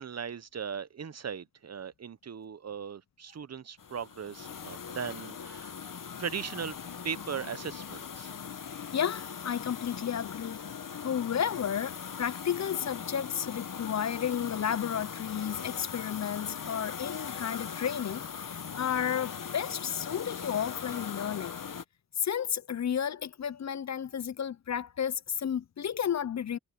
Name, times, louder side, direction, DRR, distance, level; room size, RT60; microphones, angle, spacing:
voice 1, 0.0-6.7 7.0-8.3, right 7 dB, 55° right, 0.7 m, -38 dB
sound 1, 3.8-21.8, left 7 dB, 80° left, 1.1 m, -40 dB
voice 2, 8.6-10.7 11.0-21.6 22.2-26.6, left 8 dB, 55° left, 0.5 m, -32 dB
wide cardioid pair, 100°, 32 cm